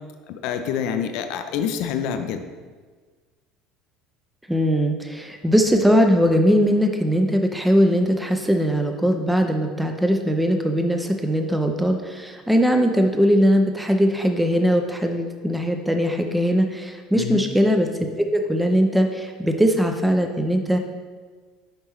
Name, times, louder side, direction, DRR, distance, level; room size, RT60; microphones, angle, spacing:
voice 1, 0.3-2.4 17.1-17.5, left 8 dB, 60° left, 7 dB, 0.5 m, -27 dB
voice 2, 4.5-20.8, equal, 5° right, 5 dB, 0.6 m, -20 dB
6.7 x 5.4 x 3.1 m, 1.5 s
figure-of-eight pair, 65°, 0 cm